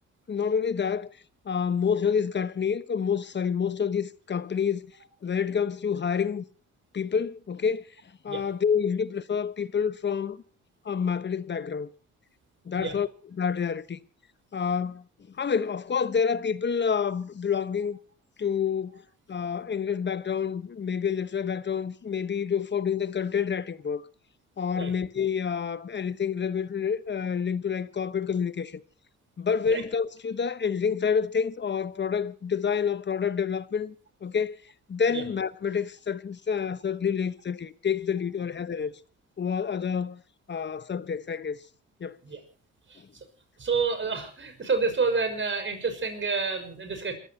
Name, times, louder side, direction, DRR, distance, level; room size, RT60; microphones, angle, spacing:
voice 1, 0.3-1.1 1.4-4.9 5.2-6.4 6.9-7.8 8.2-10.4 10.8-11.9 12.6-14.0 14.5-15.0 15.4-18.0 18.4-19.0 19.3-24.0 24.6-28.8 29.4-33.9 34.2-34.6 34.9-38.9 39.4-40.2 40.5-41.6 42.0-42.2, left 6 dB, 35° left, 1.2 m, -28 dB
voice 2, 43.6-47.1, right 4 dB, 40° right, 6.1 m, -28 dB
28.0 x 15.0 x 2.9 m
cardioid pair, 90°, 30 cm